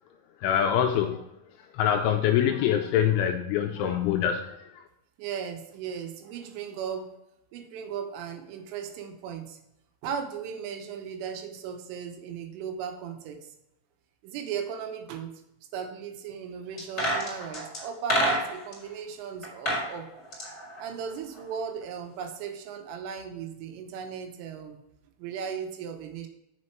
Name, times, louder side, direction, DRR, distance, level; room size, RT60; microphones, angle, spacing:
voice 1, 0.4-1.2 1.7-4.4, left 9 dB, 85° left, 4 dB, 2.8 m, -24 dB
voice 2, 5.2-7.1 7.5-9.6 10.0-13.4 14.2-15.3 15.7-20.1 20.8-24.8 25.2-26.3, right 7 dB, 80° right, 5 dB, 3.5 m, -36 dB
sound 1, 16.8-18.8 19.4-19.9 20.2-21.5 21.8-21.9, equal, 20° left, 2.1 m, -28 dB
7.5 x 6.6 x 4.5 m, 0.83 s
omnidirectional pair, 5.8 m